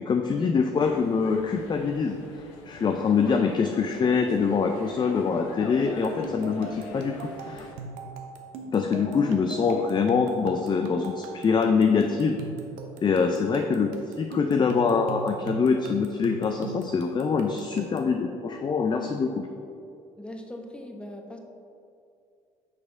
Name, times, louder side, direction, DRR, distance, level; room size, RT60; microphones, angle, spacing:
voice 1, 0.0-2.2 2.7-7.7 8.7-12.4 13.0-19.5, left 5 dB, 25° left, 5 dB, 0.4 m, -24 dB
sound 1, 0.7-7.8, left 3 dB, 75° left, 0.6 m, -43 dB
sound 2, 5.9-18.2, right 4 dB, 70° right, 0.6 m, -40 dB
voice 2, 20.2-21.4, left 1 dB, 5° left, 3 dB, 0.8 m, -41 dB
6.1 x 5.0 x 3.6 m, 2.5 s
hypercardioid pair, 50°, 17 cm